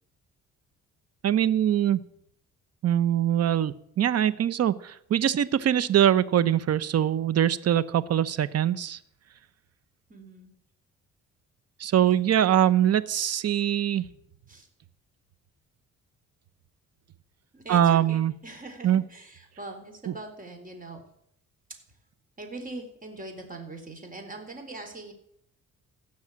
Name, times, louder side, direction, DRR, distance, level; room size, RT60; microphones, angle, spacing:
voice 1, 1.2-2.0 2.8-9.0 11.8-14.0 17.7-18.3 18.8-19.0, right 10 dB, 55° right, 17 dB, 0.8 m, -23 dB
voice 2, 10.1-10.5 12.0-12.2 14.5-14.7 17.5-21.0 22.4-25.1, right 2 dB, 25° right, 4 dB, 4.0 m, -42 dB
16.5 x 6.4 x 8.6 m, 0.72 s
cardioid pair, 90°, 30 cm